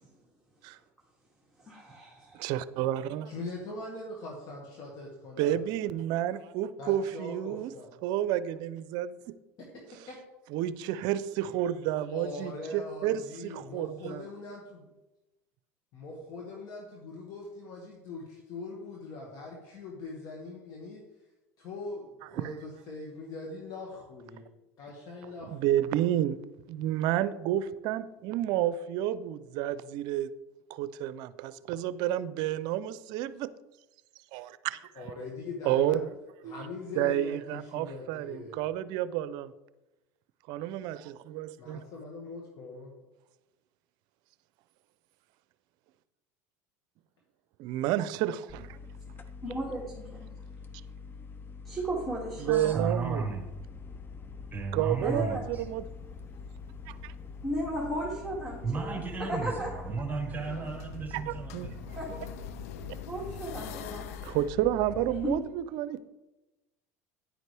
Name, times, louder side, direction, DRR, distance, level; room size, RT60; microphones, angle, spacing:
voice 1, 1.6-2.5 49.4-50.3 51.6-52.8 55.0-55.5 57.4-59.0 59.3-59.7 62.0-62.2 63.0-64.4 65.2-65.4, equal, 5° left, -4 dB, 2.4 m, -35 dB
voice 2, 2.3-3.3 5.4-7.7 8.0-9.4 10.5-14.2 25.5-26.4 26.7-30.3 30.7-33.5 34.3-35.0 35.7-36.0 36.4-36.6 37.0-39.5 40.5-41.8 47.6-48.8 52.4-53.3 54.7-55.8 56.9-57.1 61.1-61.7 64.2-66.0, right 12 dB, 65° right, 16 dB, 0.5 m, -30 dB
voice 3, 3.3-5.6 6.8-7.9 9.6-9.8 10.1-10.2 12.1-14.9 15.9-21.0 21.6-24.4 24.8-25.6 35.0-36.1 36.4-38.6 41.6-42.9, left 3 dB, 55° left, -1 dB, 2.0 m, -42 dB
sound 1, 48.5-65.4, left 5 dB, 25° left, 0.9 m, -44 dB
voice 4, 52.5-53.4 54.5-55.6 58.6-61.7, right 4 dB, 20° right, 1 dB, 1.5 m, -34 dB
sound 2, 55.0-57.2 57.6-64.5, left 10 dB, 80° left, 0.4 m, -47 dB
10.5 x 9.0 x 3.4 m, 1.0 s
supercardioid pair, 95°, 8 cm